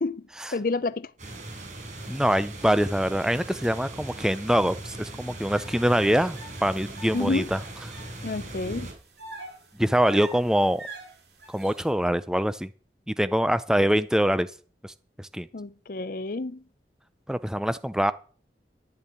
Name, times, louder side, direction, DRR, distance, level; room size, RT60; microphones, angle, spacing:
voice 1, 0.5-1.1 7.1-7.5 8.2-8.9 15.5-16.6, left 3 dB, 50° left, 0.6 m, -29 dB
sound 1, 1.2-8.9, right 2 dB, 45° right, 5.4 m, -39 dB
voice 2, 2.1-7.6 9.8-10.8 11.5-12.7 13.1-14.5 14.8-14.9 15.2-15.5 17.3-18.1, equal, 5° right, 0.6 m, -24 dB
sound 2, 5.5-8.1 8.5-8.6 9.2-11.9, right 2 dB, 75° right, 7.0 m, -43 dB
12.5 x 7.1 x 9.8 m
head